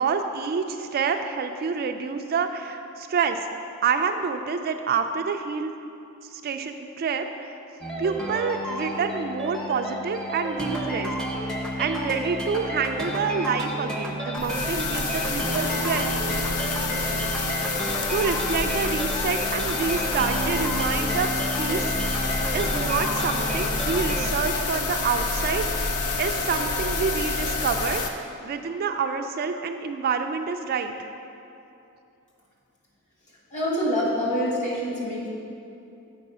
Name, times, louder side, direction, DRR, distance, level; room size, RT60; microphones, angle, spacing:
voice 1, 0.0-3.4 3.8-5.7 6.3-7.3 8.0-11.1 11.4-16.2 18.1-21.3 21.6-22.3 22.5-31.0, right 5 dB, 45° right, 6 dB, 0.3 m, -28 dB
sound 1, 7.8-24.3, equal, 5° left, 0.6 m, -31 dB
sound 2, 14.4-28.1, left 3 dB, 75° left, 0.6 m, -28 dB
voice 2, 33.5-35.3, equal, 35° left, -5 dB, 1.7 m, -26 dB
7.4 x 4.7 x 5.5 m, 2.8 s
head